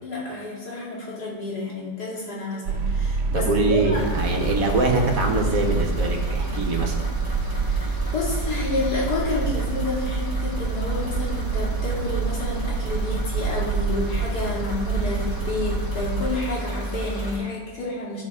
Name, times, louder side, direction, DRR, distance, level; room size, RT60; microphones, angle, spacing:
voice 1, 0.0-4.0 7.5-18.2, left 2 dB, 70° left, -6 dB, 2.9 m, -30 dB
sound 1, 2.7-16.2, right 5 dB, 85° right, 1.3 m, -28 dB
voice 2, 3.3-6.9, right 2 dB, 60° right, 2 dB, 1.4 m, -23 dB
sound 2, 3.9-17.4, right 1 dB, 15° right, 1.9 m, -30 dB
15.5 x 5.1 x 3.6 m, 1.4 s
omnidirectional pair, 1.7 m